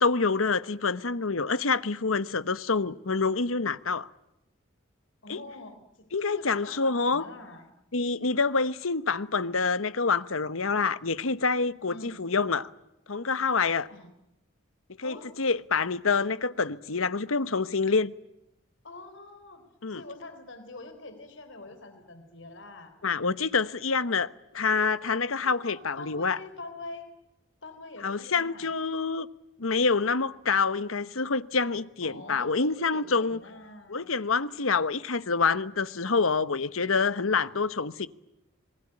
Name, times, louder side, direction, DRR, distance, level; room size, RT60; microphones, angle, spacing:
voice 1, 0.0-4.1 5.3-5.4 6.1-7.2 7.9-12.7 13.1-13.9 15.0-18.1 19.8-20.0 23.0-24.3 24.5-26.4 28.0-29.3 29.6-33.4 33.9-38.1, left 4 dB, 85° left, 1.1 m, -27 dB
voice 2, 5.2-7.7 11.9-12.3 13.9-14.1 15.0-15.3 16.2-16.3 18.8-19.6 19.9-22.9 25.4-27.1 27.6-28.7 32.0-34.1, left 2 dB, 65° left, 4.0 m, -45 dB
27.0 x 20.5 x 9.9 m
head